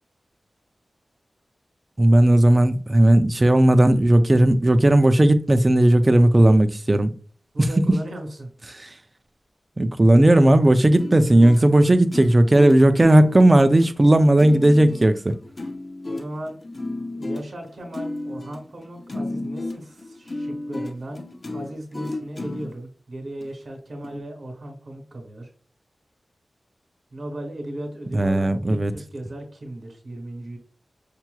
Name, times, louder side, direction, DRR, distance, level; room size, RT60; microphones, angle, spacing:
voice 1, 2.0-7.1 7.9-8.0 8.7-8.9 9.8-15.4 28.1-28.9, right 1 dB, 25° right, 0.4 m, -16 dB
voice 2, 7.5-8.5 8.9-9.0 11.5-11.6 16.1-16.6 17.1-25.5 27.1-30.6, right 1 dB, 65° right, 1.6 m, -36 dB
sound 1, 11.0-22.8 23.4-23.5 24.0-24.2, left 2 dB, 35° left, 0.5 m, -33 dB
5.7 x 2.9 x 2.2 m
wide cardioid pair, 105°, 0 cm